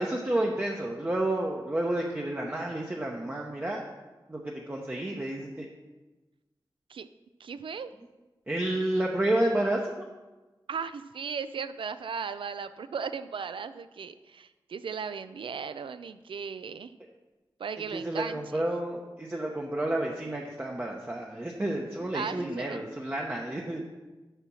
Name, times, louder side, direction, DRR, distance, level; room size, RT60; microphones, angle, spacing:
voice 1, 0.0-3.8 4.3-5.6 8.5-9.8 17.9-23.8, right 1 dB, 20° right, -1 dB, 0.8 m, -30 dB
voice 2, 7.4-7.9 10.7-16.9 17.6-18.7 22.1-22.8, right 6 dB, 85° right, 12 dB, 0.4 m, -36 dB
6.7 x 5.7 x 6.2 m, 1.2 s
wide cardioid pair, 85°, 9 cm